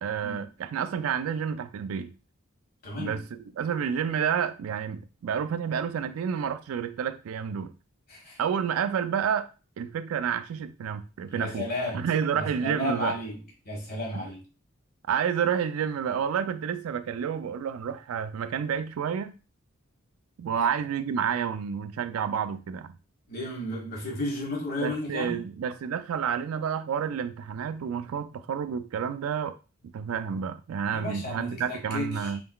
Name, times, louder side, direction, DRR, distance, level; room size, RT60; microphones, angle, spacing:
voice 1, 0.0-2.1 3.0-7.7 8.4-9.5 9.8-11.7 11.9-13.2 14.1-14.2 15.1-19.3 20.4-22.9 24.8-29.5 29.9-32.4, right 7 dB, 85° right, 0.3 m, -29 dB
voice 2, 2.8-3.2 8.1-8.4 11.3-12.1 12.4-13.4 13.6-14.4 20.5-20.7 23.3-25.4 30.9-32.3, left 1 dB, 45° left, 1.4 m, -33 dB
4.2 x 3.7 x 2.3 m
head